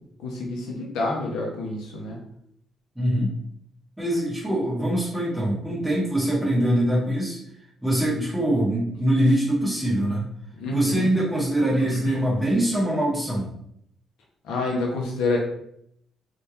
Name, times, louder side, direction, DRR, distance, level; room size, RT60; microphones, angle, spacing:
voice 1, 0.2-2.2 10.6-11.1 11.8-12.1 14.4-15.4, left 2 dB, 90° left, -1 dB, 0.8 m, -28 dB
voice 2, 3.0-3.3 4.0-7.4 7.8-10.3 10.7-13.5, right 1 dB, 10° right, -8 dB, 1.2 m, -23 dB
3.6 x 2.5 x 2.9 m, 0.73 s
cardioid pair, 90°, 0 cm